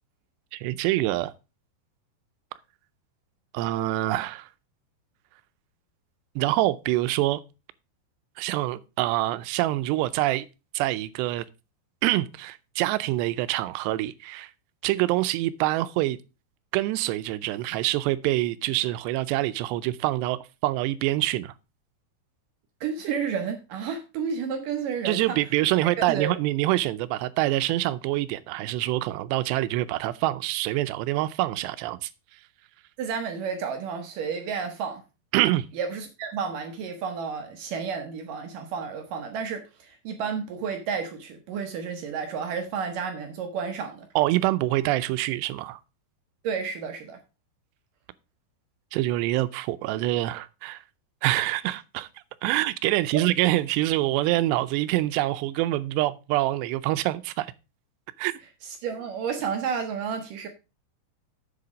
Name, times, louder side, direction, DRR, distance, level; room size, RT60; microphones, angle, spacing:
voice 1, 0.5-1.3 3.5-4.5 6.4-7.4 8.4-10.5 10.7-11.5 12.0-14.5 14.8-16.2 16.7-21.5 25.1-32.1 35.3-35.7 44.2-45.8 48.9-50.8 51.2-52.1 52.4-57.5 58.2-58.3, right 16 dB, 85° right, 2.7 m, -25 dB
voice 2, 22.8-25.4 26.0-26.4 33.0-35.0 35.8-44.1 46.4-47.2 58.8-60.5, right 6 dB, 70° right, 2.1 m, -31 dB
7.7 x 6.8 x 5.0 m
omnidirectional pair, 4.9 m